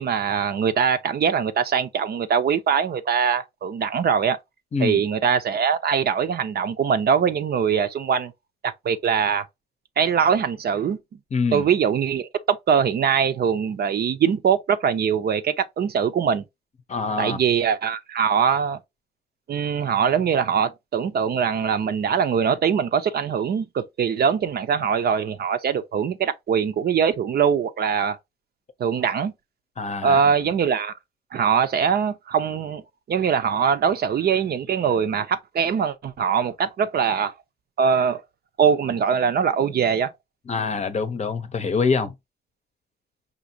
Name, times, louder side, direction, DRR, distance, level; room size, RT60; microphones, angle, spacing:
voice 1, 0.0-4.4 4.8-8.3 8.6-9.4 10.0-11.0 11.5-16.4 17.2-18.8 19.5-28.2 28.8-29.3 30.0-30.9 31.3-32.8 33.1-37.3 37.8-38.2 38.6-40.1, right 7 dB, 50° right, 0.6 m, -22 dB
voice 2, 4.7-5.0 11.3-11.7 16.9-17.4 29.8-30.2 40.5-42.1, left 5 dB, 35° left, 0.7 m, -25 dB
5.1 x 2.8 x 2.7 m
cardioid pair, 90°, 20 cm